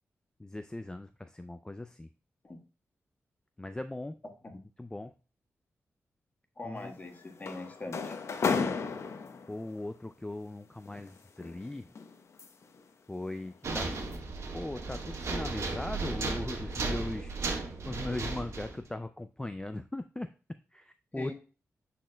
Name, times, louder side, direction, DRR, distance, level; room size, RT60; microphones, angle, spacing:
voice 1, 0.4-2.1 3.6-4.2 4.5-5.1 6.6-6.9 9.5-11.9 13.1-14.2 14.5-17.3 17.8-20.3 20.7-21.3, left 2 dB, 15° left, 9 dB, 0.3 m, -39 dB
voice 2, 6.6-8.2 21.1-21.3, left 2 dB, 35° left, 2 dB, 1.4 m, -42 dB
sound 1, 6.8-9.7 10.9-12.8 13.2-13.5 13.9-14.2, left 5 dB, 65° left, 0.7 m, -34 dB
sound 2, 13.6-18.8, right 3 dB, 70° right, 1.2 m, -35 dB
10.0 x 4.2 x 2.2 m, 0.35 s
cardioid pair, 75°, 5 cm